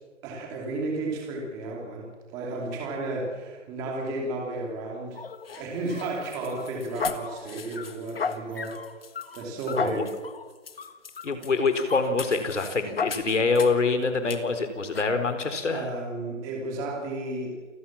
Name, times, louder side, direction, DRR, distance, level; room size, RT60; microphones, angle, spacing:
voice 1, 0.2-2.1 2.3-5.2 5.6-8.8 9.3-10.0 15.7-17.7, right 2 dB, 10° right, -1 dB, 2.8 m, -33 dB
sound 1, 5.2-13.9 14.3-14.4 14.9-15.1, left 5 dB, 50° left, 1.7 m, -35 dB
voice 2, 11.2-15.9, left 4 dB, 70° left, 9 dB, 4.4 m, -25 dB
29.0 x 18.0 x 7.4 m, 1.3 s
hypercardioid pair, 175°, 38 cm